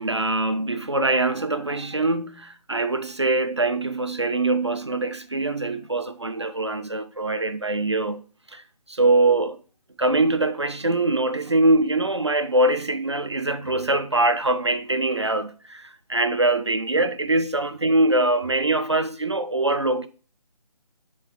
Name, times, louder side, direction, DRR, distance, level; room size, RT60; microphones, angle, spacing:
voice 1, 0.0-8.2 8.5-9.6 10.0-20.1, right 2 dB, 45° right, 0.4 m, -23 dB
6.2 x 4.7 x 3.5 m
figure-of-eight pair, 180°, 21 cm